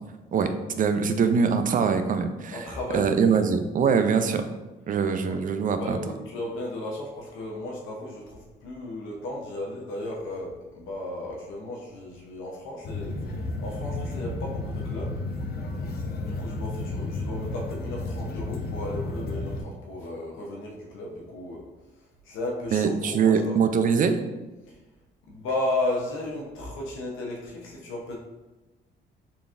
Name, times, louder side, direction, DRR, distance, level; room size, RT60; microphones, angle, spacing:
voice 1, 0.3-4.4 4.9-6.0 22.7-24.2, right 6 dB, 45° right, 8 dB, 0.4 m, -23 dB
voice 2, 2.5-3.4 5.2-5.4 5.8-15.2 16.2-21.6 22.2-23.6 24.7-24.8 25.3-28.2, left 1 dB, 90° left, -2 dB, 0.7 m, -34 dB
sound 1, 12.8-19.6, left 2 dB, 50° left, 0.6 m, -32 dB
3.9 x 3.3 x 2.5 m, 1.1 s
cardioid pair, 90°, 20 cm